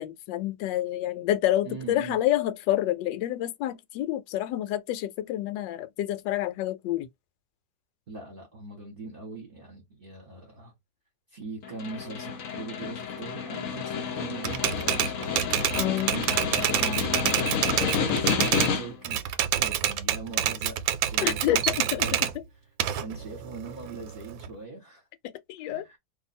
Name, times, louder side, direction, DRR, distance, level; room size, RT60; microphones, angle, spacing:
voice 1, 0.0-7.1 15.7-16.1 21.2-22.1 25.5-25.8, left 13 dB, 75° left, 1.2 m, -28 dB
voice 2, 1.6-2.2 8.1-10.7 11.3-15.4 16.0-19.2 19.5-22.2 23.0-25.1 25.6-26.0, right 3 dB, 35° right, 1.1 m, -41 dB
Snare drum, 11.6-19.1, left 6 dB, 60° left, 0.9 m, -30 dB
Typewriter, 14.4-18.7 19.0-22.3 22.8-24.5, right 10 dB, 85° right, 1.3 m, -27 dB
2.7 x 2.6 x 4.1 m
omnidirectional pair, 2.0 m